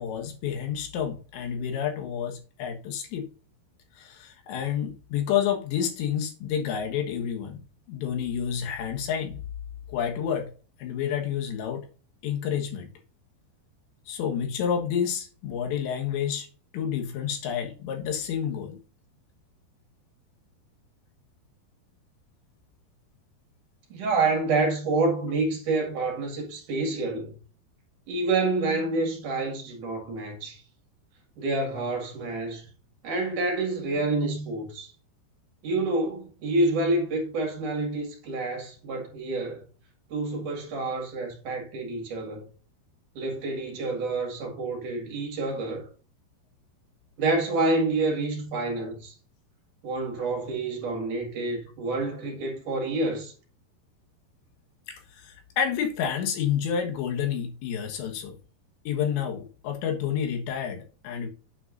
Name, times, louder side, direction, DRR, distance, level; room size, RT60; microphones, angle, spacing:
voice 1, 0.0-3.3 4.0-7.6 7.9-9.4 9.9-10.5 10.8-11.8 12.2-12.9 14.1-16.5 16.7-18.8 54.9-58.4 58.9-61.3, left 8 dB, 90° left, 3.7 m, -29 dB
voice 2, 23.9-27.3 28.1-30.6 31.4-32.6 33.0-34.9 35.6-39.6 40.1-42.4 43.1-45.9 47.2-49.1 49.8-53.3, right 2 dB, 55° right, 3.2 m, -28 dB
9.1 x 8.1 x 2.6 m
omnidirectional pair, 4.9 m